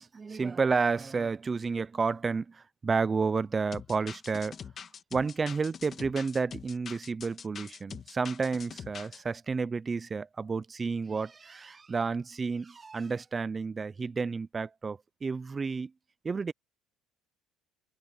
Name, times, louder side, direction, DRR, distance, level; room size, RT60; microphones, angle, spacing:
voice 1, 0.0-4.6 5.1-15.9 16.2-16.5, right 4 dB, 20° right, 0.5 m, -31 dB
sound 1, 3.7-9.2, left 7 dB, 30° left, 1.7 m, -44 dB
cardioid pair, 140°, 0 cm